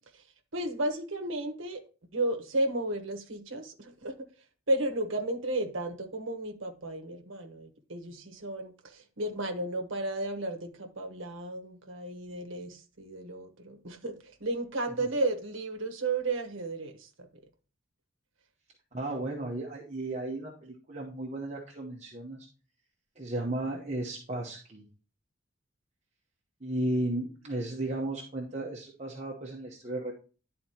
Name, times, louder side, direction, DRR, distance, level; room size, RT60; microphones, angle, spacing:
voice 1, 0.5-1.8 2.1-4.1 4.7-17.3, right 2 dB, 70° right, 1.2 m, -33 dB
voice 2, 18.9-22.5 23.2-24.8 26.6-30.1, right 1 dB, 35° right, 1.0 m, -34 dB
11.0 x 4.2 x 2.9 m
head